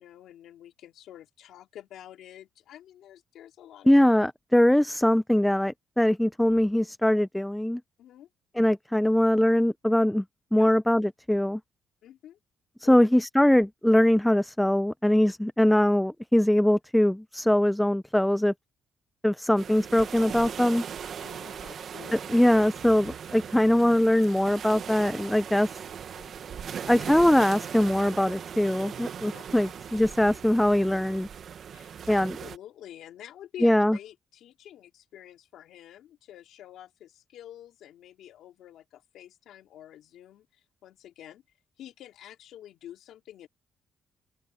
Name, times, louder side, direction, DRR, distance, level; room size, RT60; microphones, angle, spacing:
voice 1, 0.0-3.9 8.0-8.3 10.6-10.7 12.0-12.4 12.8-13.1 21.2-22.3 26.1-26.9 29.3-29.7 31.7-41.4 41.8-43.5, left 11 dB, 80° left, 3.5 m, -48 dB
voice 2, 3.9-7.8 8.6-10.2 10.5-11.6 12.8-18.5 19.2-20.8 22.1-25.8 26.9-31.3 32.1-32.4 33.6-34.0, left 1 dB, 5° left, 0.5 m, -22 dB
sound 1, 19.6-32.6, right 8 dB, 60° right, 1.6 m, -39 dB
open air
cardioid pair, 90°, 0 cm